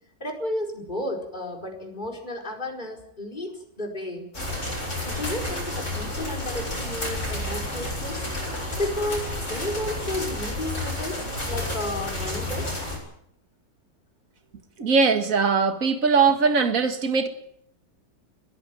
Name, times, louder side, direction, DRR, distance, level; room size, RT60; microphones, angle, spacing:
voice 1, 0.2-3.5 3.8-4.3 5.0-8.5 8.8-12.8, left 1 dB, 25° left, 5.0 m, -32 dB
sound 1, 4.3-13.0, left 1 dB, 40° left, 8.0 m, -31 dB
voice 2, 14.8-17.3, right 5 dB, 50° right, 2.2 m, -20 dB
22.0 x 15.0 x 9.2 m
omnidirectional pair, 1.9 m